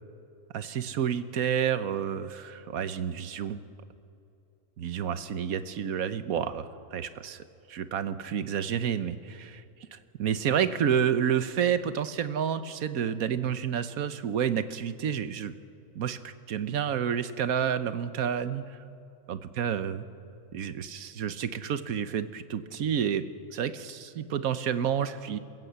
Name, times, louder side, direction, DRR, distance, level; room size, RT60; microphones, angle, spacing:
voice 1, 0.5-3.6 4.8-7.4 7.7-9.6 9.9-15.5 15.9-18.8 19.3-20.0 20.5-23.3 23.5-25.4, right 8 dB, 75° right, 12 dB, 1.3 m, -29 dB
28.0 x 15.0 x 8.1 m, 2.7 s
omnidirectional pair, 1.5 m